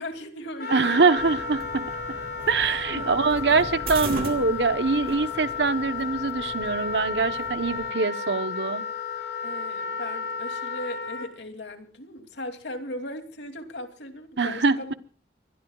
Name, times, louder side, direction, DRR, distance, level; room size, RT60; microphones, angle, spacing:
voice 1, 0.0-0.8 2.9-3.9 9.4-15.0, left 1 dB, 85° left, 2.9 m, -38 dB
Wind instrument woodwind instrument, 0.6-11.3, left 5 dB, 65° left, 3.2 m, -33 dB
voice 2, 0.7-2.2 2.5-8.8 14.4-14.8, right 4 dB, 80° right, 1.1 m, -24 dB
sound 1, 1.2-7.9, right 2 dB, 55° right, 2.8 m, -39 dB
24.5 x 21.0 x 2.4 m
head